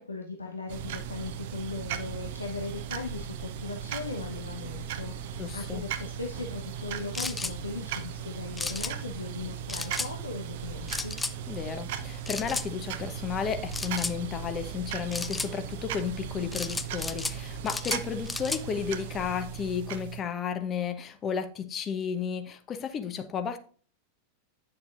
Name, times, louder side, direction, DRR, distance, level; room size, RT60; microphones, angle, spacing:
voice 1, 0.0-11.1, left 3 dB, 80° left, 1.1 m, -38 dB
sound 1, 0.7-20.2, right 8 dB, 50° right, 0.8 m, -37 dB
sound 2, 4.0-14.8, left 4 dB, 45° left, 2.0 m, -56 dB
voice 2, 5.4-5.8 11.5-23.6, left 7 dB, 25° left, 1.0 m, -33 dB
sound 3, 7.1-7.5 8.6-8.9 9.7-10.1 10.9-11.3 12.3-12.7 13.7-14.2 15.1-15.5 16.5-17.4 17.7-18.6, left 3 dB, 10° left, 0.5 m, -33 dB
9.9 x 6.8 x 2.5 m
figure-of-eight pair, 90°, 0 cm